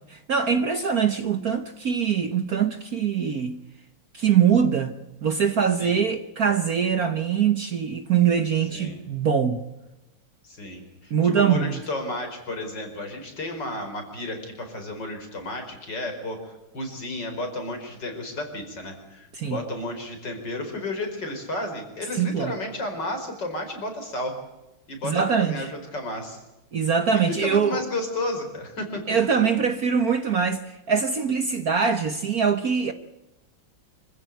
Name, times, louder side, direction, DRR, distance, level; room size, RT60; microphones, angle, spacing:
voice 1, 0.3-3.6 4.1-4.9 5.2-9.6 11.1-11.8 19.3-19.6 22.2-22.5 25.0-25.6 26.7-27.8 29.1-32.9, right 7 dB, 50° right, 1.4 m, -23 dB
voice 2, 10.4-24.4 24.9-26.4 27.1-29.0, left 1 dB, 55° left, 5.5 m, -32 dB
26.0 x 15.5 x 9.2 m
omnidirectional pair, 2.3 m